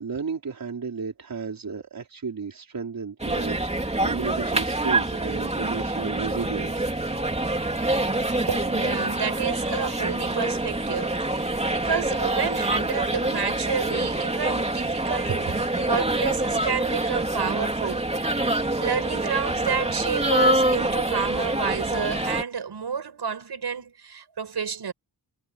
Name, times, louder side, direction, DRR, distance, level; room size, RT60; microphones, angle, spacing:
voice 1, 0.0-6.9, right 5 dB, 55° right, 4.4 m, -33 dB
sound 1, 3.2-22.4, right 1 dB, 15° right, 3.1 m, -26 dB
voice 2, 8.5-18.1 18.5-24.9, right 6 dB, 70° right, 6.1 m, -30 dB
wide cardioid pair, 165°, 41 cm